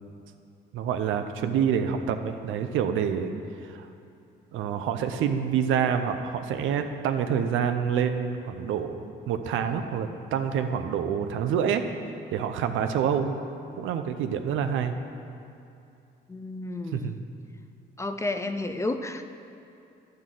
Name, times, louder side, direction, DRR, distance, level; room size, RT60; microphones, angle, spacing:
voice 1, 0.7-3.3 3.7-3.9 4.5-11.8 12.3-13.3 13.8-14.9 16.9-17.2, right 8 dB, 85° right, 8 dB, 0.6 m, -27 dB
voice 2, 16.3-17.1 18.0-19.2, left 2 dB, 15° left, 8 dB, 0.4 m, -31 dB
10.5 x 7.8 x 3.8 m, 2.6 s
cardioid pair, 90°, 20 cm